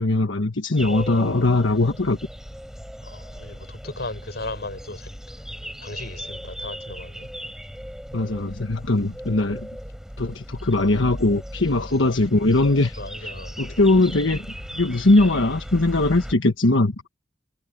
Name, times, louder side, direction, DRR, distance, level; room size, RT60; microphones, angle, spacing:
voice 1, 0.0-2.2 8.1-9.7 10.2-13.3 13.6-14.4 14.7-17.1, left 2 dB, 85° left, 1.3 m, -20 dB
sound 1, 0.8-16.3, equal, ahead, 7.6 m, -37 dB
voice 2, 3.0-5.1 5.8-7.3 11.8-11.9 13.0-13.6, left 2 dB, 55° left, 7.5 m, -36 dB
head